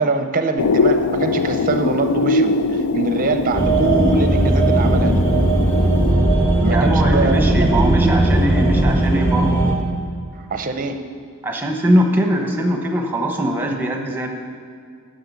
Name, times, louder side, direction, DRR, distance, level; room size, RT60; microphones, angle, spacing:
voice 1, 0.0-5.2 6.6-8.2 10.4-11.1, right 3 dB, 35° right, 7 dB, 0.6 m, -23 dB
sound 1, 0.6-6.1, left 3 dB, 85° left, 0.4 m, -21 dB
sound 2, 3.5-9.8, right 1 dB, 10° left, 1.2 m, -17 dB
voice 2, 6.7-9.6 11.4-14.3, equal, 10° right, 2 dB, 1.0 m, -21 dB
10.5 x 6.5 x 6.9 m, 2.1 s
head